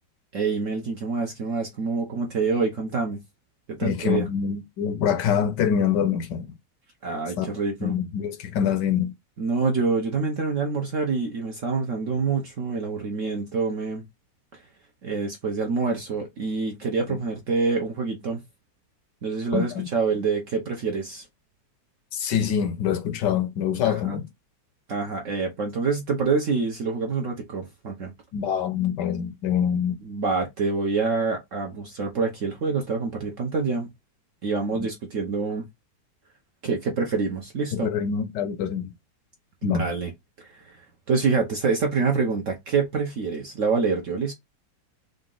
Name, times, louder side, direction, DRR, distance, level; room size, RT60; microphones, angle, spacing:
voice 1, 0.3-3.2 3.8-4.2 7.0-7.9 9.4-14.0 14.5-14.6 15.0-18.4 19.2-21.2 23.8-24.2 24.9-28.1 30.0-33.9 34.4-35.6 36.6-37.9 39.6-40.1 40.4-40.8 41.1-44.3, right 4 dB, 60° right, 0.9 m, -26 dB
voice 2, 3.8-6.5 7.4-7.5 7.8-9.1 17.1-17.2 19.5-19.9 22.1-24.3 28.3-30.0 34.8-34.9 37.7-38.9 39.6-39.9, left 8 dB, 75° left, 1.2 m, -25 dB
4.0 x 2.4 x 3.7 m
omnidirectional pair, 2.0 m